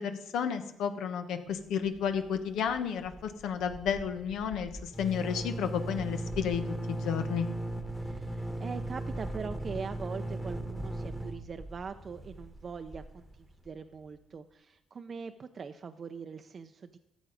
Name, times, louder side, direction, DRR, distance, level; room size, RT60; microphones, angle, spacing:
voice 1, 0.0-6.6 6.9-7.5, left 7 dB, 80° left, 8 dB, 1.1 m, -32 dB
sound 1, 1.9-2.4 2.7-2.8 3.0-13.7, right 1 dB, 5° left, 1.3 m, -38 dB
voice 2, 8.0-17.0, right 5 dB, 45° right, 7 dB, 0.5 m, -42 dB
13.5 x 7.3 x 5.1 m, 0.94 s
cardioid pair, 90°, 0 cm